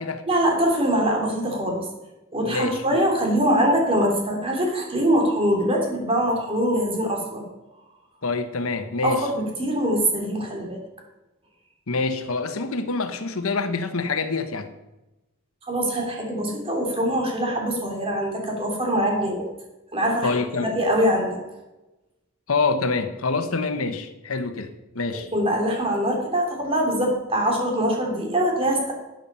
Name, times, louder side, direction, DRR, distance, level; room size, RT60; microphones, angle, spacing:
voice 1, 0.3-1.9 2.3-7.4 9.0-10.8 15.7-19.4 19.9-20.3 20.6-21.4 25.3-28.9, equal, 25° right, 0 dB, 3.2 m, -23 dB
voice 2, 2.4-3.0 8.2-9.3 11.9-14.7 20.2-20.7 22.5-24.7 24.9-25.3, left 3 dB, 85° left, 9 dB, 1.1 m, -26 dB
12.5 x 9.1 x 5.5 m, 1.0 s
head